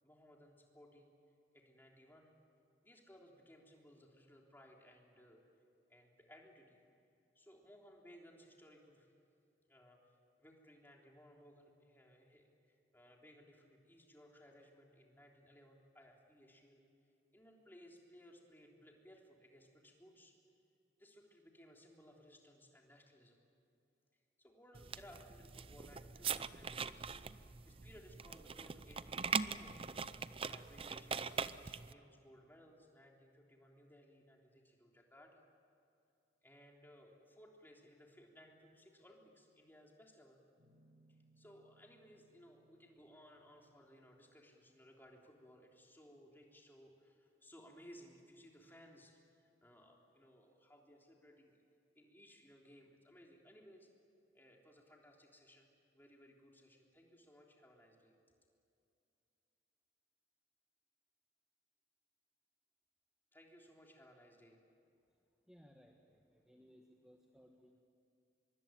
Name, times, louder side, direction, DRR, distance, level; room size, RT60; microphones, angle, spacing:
voice 1, 0.0-1.2 1.5-2.3 2.8-5.4 5.9-6.8 7.3-9.1 9.7-10.0 10.4-16.8 17.3-20.3 21.0-23.4 24.4-29.8 30.2-35.4 36.4-40.4 41.1-51.6 51.9-53.9 54.3-58.1 63.3-64.6, equal, 10° left, 0 dB, 3.5 m, -62 dB
sound 1, 24.7-31.9, right 6 dB, 30° right, 0.6 m, -42 dB
Guitar, 40.6-45.8, right 2 dB, 75° right, 7.3 m, -73 dB
voice 2, 65.5-67.8, equal, 5° right, 2 dB, 1.5 m, -63 dB
24.5 x 23.0 x 9.2 m, 2.5 s
head